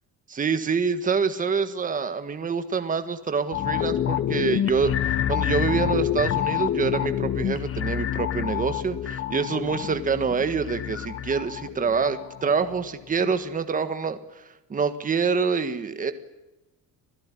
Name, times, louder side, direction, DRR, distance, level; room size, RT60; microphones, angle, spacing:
voice 1, 0.3-14.4 14.7-16.1, right 5 dB, 20° right, 9 dB, 1.6 m, -26 dB
sound 1, 3.5-12.8 13.2-13.3, left 10 dB, 35° left, 1.0 m, -28 dB
27.5 x 16.5 x 9.9 m, 1.0 s
cardioid pair, 170°, 37 cm